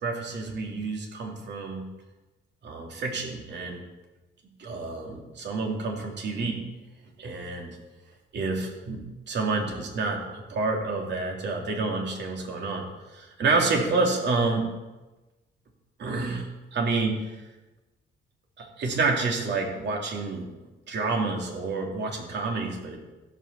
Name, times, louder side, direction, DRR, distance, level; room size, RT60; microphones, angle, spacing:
voice 1, 0.0-1.9 2.6-3.8 4.6-6.6 7.2-7.8 8.3-12.9 13.1-14.7 16.0-16.5 16.7-17.2 18.6-20.5 20.9-23.0, right 3 dB, 60° right, 0 dB, 2.9 m, -28 dB
15.0 x 6.0 x 7.0 m, 1.1 s
cardioid pair, 90°, 20 cm